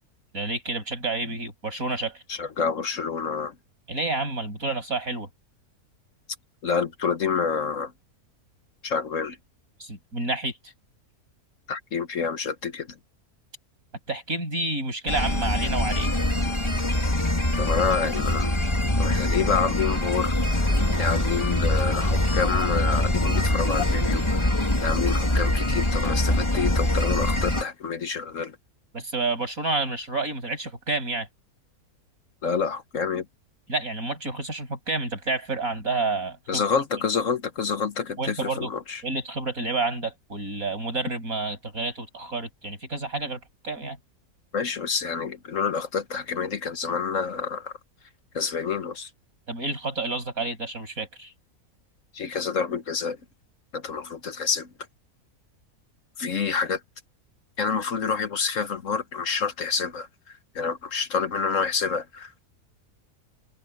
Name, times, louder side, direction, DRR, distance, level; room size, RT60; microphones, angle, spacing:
voice 1, 0.3-2.2 3.9-5.3 9.8-10.6 14.1-16.1 28.9-31.3 33.7-36.6 38.2-38.7 39.0-44.0 49.5-51.3, right 3 dB, 65° right, 8.2 m, -29 dB
voice 2, 2.3-3.5 6.6-7.9 8.8-9.4 11.7-12.9 17.6-18.5 19.0-20.3 21.0-24.5 24.8-28.6 32.4-33.2 36.5-39.0 44.5-47.7 48.3-49.1 52.1-53.2 53.7-54.7 56.2-56.8 57.6-62.5, left 6 dB, 60° left, 1.5 m, -28 dB
sound 1, 15.1-27.6, left 1 dB, 20° left, 2.3 m, -24 dB
open air
omnidirectional pair, 1.6 m